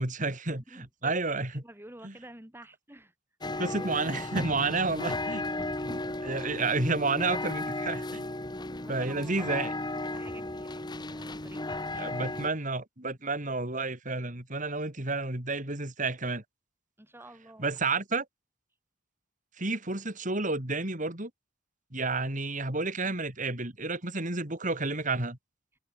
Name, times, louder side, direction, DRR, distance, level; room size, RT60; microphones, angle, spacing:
voice 1, 0.0-1.6 3.6-5.4 5.8-8.2 8.9-9.7 12.0-16.4 17.6-18.3 19.6-21.3 21.9-25.4, right 3 dB, 45° right, 4.2 m, -31 dB
voice 2, 0.7-1.1 1.5-3.1 3.5-3.8 5.7-6.7 8.4-9.5 9.8-12.2 17.0-17.7 19.6-19.7, right 1 dB, 15° right, 8.0 m, -51 dB
sound 1, 3.4-12.5, left 2 dB, 25° left, 1.9 m, -35 dB
head